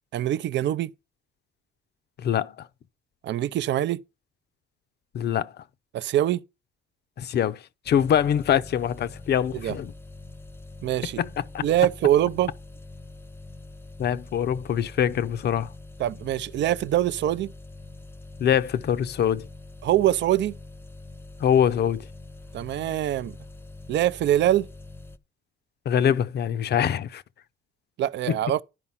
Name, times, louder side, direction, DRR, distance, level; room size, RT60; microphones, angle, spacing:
voice 1, 0.1-0.9 3.2-4.0 5.9-6.4 9.5-9.7 10.8-11.2 11.6-12.5 16.0-17.5 19.8-20.5 22.5-23.4 23.9-24.7 28.0-28.6, right 12 dB, 65° right, 0.5 m, -23 dB
voice 2, 2.2-2.7 5.1-5.6 7.2-9.9 11.2-11.3 11.5-11.6 14.0-15.7 18.4-19.5 21.4-22.1 25.9-27.2 28.3-28.4, left 9 dB, 55° left, 0.6 m, -24 dB
sound 1, 7.8-25.2, left 2 dB, 10° left, 0.6 m, -44 dB
11.0 x 4.7 x 5.6 m
cardioid pair, 90°, 20 cm